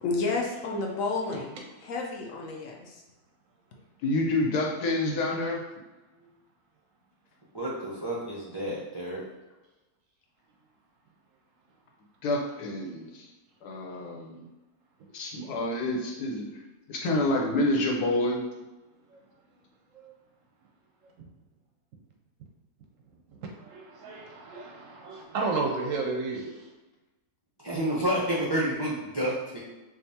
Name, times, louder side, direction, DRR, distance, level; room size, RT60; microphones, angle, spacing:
voice 1, 0.0-2.9, left 3 dB, 65° left, 0 dB, 0.9 m, -31 dB
voice 2, 1.3-1.6 6.2-6.3 19.1-19.2 19.9-20.1 21.2-21.3 23.3-26.7, right 3 dB, 65° right, 1 dB, 0.9 m, -33 dB
voice 3, 4.0-5.6 12.2-13.3 13.6-14.5 15.1-16.6 16.9-18.4, left 2 dB, 85° left, 0 dB, 1.3 m, -28 dB
voice 4, 7.5-9.2 27.6-29.6, right 1 dB, 35° right, -7 dB, 0.4 m, -29 dB
5.1 x 2.4 x 2.7 m, 1.1 s
omnidirectional pair, 1.6 m